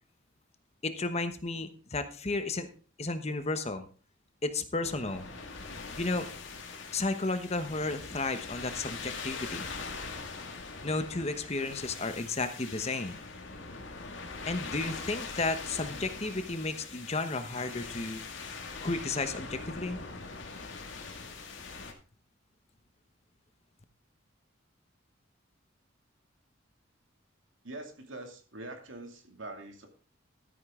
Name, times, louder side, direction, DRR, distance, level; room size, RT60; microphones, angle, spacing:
voice 1, 0.8-2.7 3.0-3.9 4.4-5.2 6.0-6.3 6.9-9.7 10.8-13.2 14.5-18.2 18.8-20.0, left 3 dB, 30° left, 9 dB, 1.0 m, -33 dB
sound 1, 4.8-21.9, left 4 dB, 70° left, 2.1 m, -42 dB
voice 2, 27.6-29.9, right 2 dB, 70° right, 4 dB, 2.4 m, -44 dB
13.5 x 9.2 x 3.7 m, 0.37 s
head